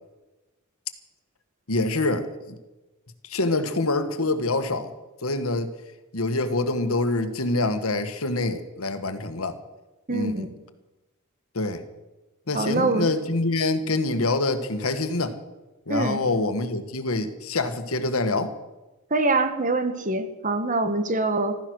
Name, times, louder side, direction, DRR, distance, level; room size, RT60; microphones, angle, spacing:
voice 1, 1.7-2.6 3.2-4.9 5.2-5.7 6.1-9.6 10.1-10.4 11.5-11.8 12.5-15.4 15.9-18.5, left 2 dB, 85° left, 9 dB, 1.6 m, -25 dB
voice 2, 10.1-10.5 12.5-13.1 15.9-16.2 19.1-21.6, right 2 dB, 40° right, 9 dB, 1.5 m, -24 dB
15.0 x 13.5 x 6.4 m, 1.1 s
head